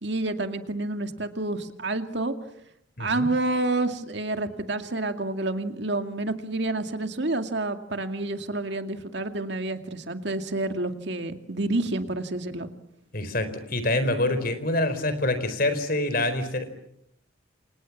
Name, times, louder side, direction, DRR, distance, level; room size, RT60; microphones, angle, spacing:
voice 1, 0.0-2.3 3.0-12.7, right 2 dB, 55° right, 6 dB, 2.3 m, -29 dB
voice 2, 3.0-3.3 13.1-16.7, left 2 dB, 45° left, 11 dB, 4.4 m, -26 dB
30.0 x 27.0 x 7.4 m, 0.75 s
head